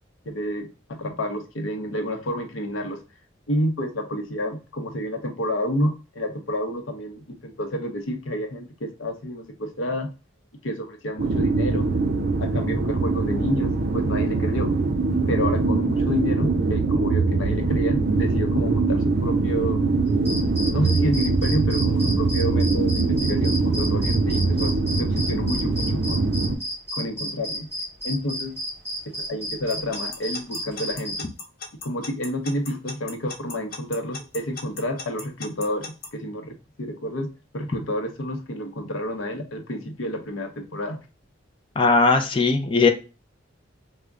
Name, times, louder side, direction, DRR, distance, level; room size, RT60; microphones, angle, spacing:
voice 1, 0.3-3.0 3.5-10.1 10.6-11.9 12.4-14.7 15.3-19.8 20.7-26.3 26.9-27.7 28.0-28.5 29.2-31.3 31.8-41.0, equal, 85° left, 0.7 m, -29 dB
sound 1, 11.2-26.5, right 3 dB, 50° right, 0.5 m, -22 dB
sound 2, 20.1-31.2, equal, 15° right, 1.7 m, -32 dB
Alarm / Clock, 29.7-36.1, left 4 dB, 50° left, 0.9 m, -36 dB
voice 2, 41.8-42.9, left 3 dB, 25° left, 0.4 m, -18 dB
3.4 x 2.1 x 3.6 m
head